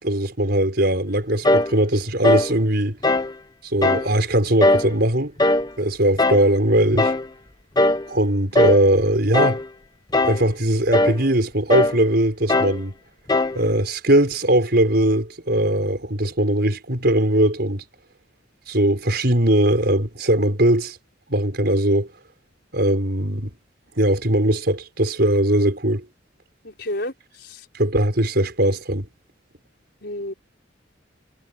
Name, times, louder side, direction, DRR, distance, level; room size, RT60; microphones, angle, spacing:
voice 1, 0.0-3.0 3.6-5.3 5.8-7.1 8.1-9.6 10.2-12.9 13.5-17.8 18.7-21.0 21.3-22.1 22.7-23.5 24.0-26.1 27.7-29.1, right 1 dB, 55° right, 5.7 m, -20 dB
sound 1, 1.4-1.7 2.2-2.5 3.0-3.3 3.8-4.1 4.6-4.9 5.4-5.7 6.2-6.5 7.0-7.3 7.8-8.1 8.6-8.9 9.3-9.7 10.1-10.5 10.9-11.2 11.7-12.0 12.5-12.8 13.3-13.6, left 2 dB, 20° left, 1.0 m, -19 dB
voice 2, 26.6-27.1 27.4-27.6 30.0-30.3, left 1 dB, 60° left, 6.1 m, -30 dB
head